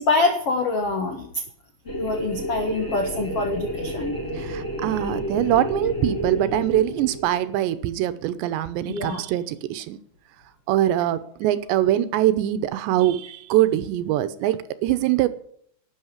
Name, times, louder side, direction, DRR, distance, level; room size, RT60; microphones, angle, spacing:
voice 1, 0.0-1.4 1.8-4.2 8.9-9.2, left 3 dB, 70° left, 4 dB, 1.3 m, -25 dB
sound 1, 1.9-7.6, equal, 20° left, 2.6 m, -30 dB
voice 2, 4.4-10.0 10.7-15.3, right 13 dB, 80° right, 13 dB, 3.0 m, -23 dB
12.5 x 8.9 x 9.6 m, 0.64 s
omnidirectional pair, 5.2 m